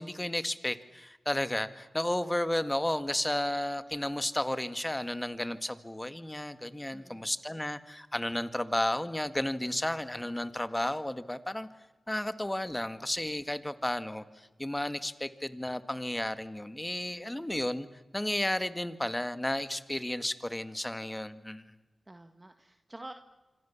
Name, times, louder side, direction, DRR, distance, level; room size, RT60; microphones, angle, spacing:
voice 1, 0.0-11.7 12.1-17.9 18.1-21.6, left 1 dB, 15° left, 11 dB, 1.9 m, -33 dB
voice 2, 6.9-7.3 22.1-23.1, right 1 dB, 25° right, 6 dB, 1.7 m, -48 dB
26.0 x 26.0 x 7.3 m, 1.2 s
cardioid pair, 50°, 0 cm